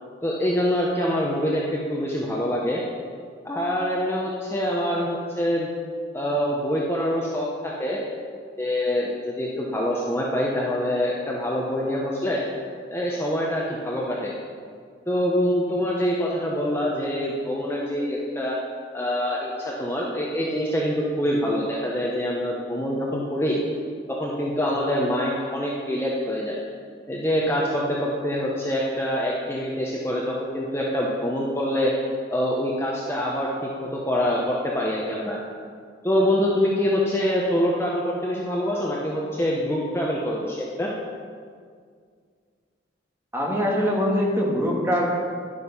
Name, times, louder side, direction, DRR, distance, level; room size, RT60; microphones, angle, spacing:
voice 1, 0.2-2.8 3.4-5.7 6.1-8.0 8.6-12.4 12.9-14.3 15.1-18.6 18.9-23.6 24.1-26.6 27.1-31.9 32.3-35.4 36.0-40.9, equal, 15° left, -4 dB, 1.2 m, -25 dB
voice 2, 43.3-45.1, equal, 15° right, -2 dB, 2.2 m, -23 dB
13.0 x 11.0 x 5.6 m, 2.1 s
head